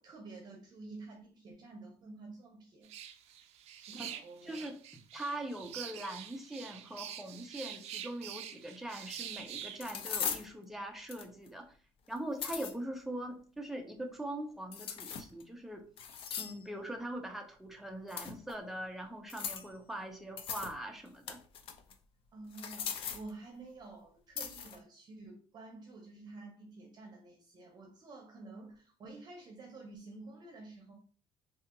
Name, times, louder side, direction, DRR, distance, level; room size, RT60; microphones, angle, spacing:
voice 1, 0.0-2.9 3.7-4.7 5.6-5.8 12.5-12.6 22.3-30.9, right 3 dB, 40° right, 2 dB, 0.7 m, -50 dB
sound 1, 2.8-9.8, right 10 dB, 75° right, 0.4 m, -46 dB
voice 2, 4.4-4.8 5.1-11.7 12.1-15.9 16.4-21.4, right 1 dB, 5° right, 3 dB, 0.5 m, -42 dB
sound 2, 8.9-9.0 9.8-10.5 11.1-11.5 12.2-12.7 14.7-15.4 16.0-16.6 18.1-18.5 19.3-19.7 20.4-20.7 21.1-21.9 22.5-23.3 24.4-24.8, left 7 dB, 55° left, 0.5 m, -39 dB
2.7 x 2.7 x 3.7 m, 0.40 s
cardioid pair, 170°, 11 cm